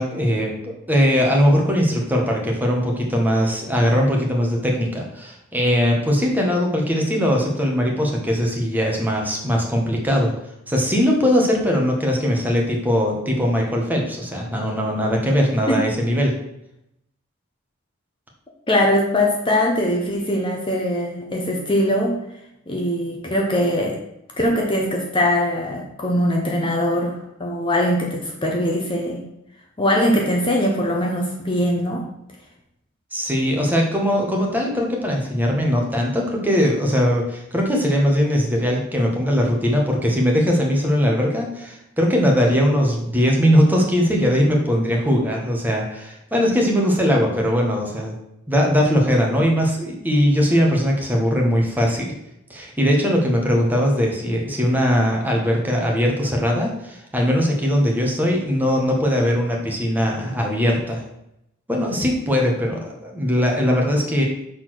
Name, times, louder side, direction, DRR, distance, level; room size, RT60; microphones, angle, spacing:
voice 1, 0.0-10.3 10.7-16.3 33.1-48.2 48.5-52.1 52.5-61.0 61.7-64.2, equal, 10° right, -1 dB, 1.3 m, -20 dB
voice 2, 18.7-22.2 22.7-24.0 24.4-29.2 29.8-32.0, left 1 dB, 25° left, 0 dB, 1.0 m, -21 dB
6.1 x 4.3 x 6.3 m, 0.81 s
head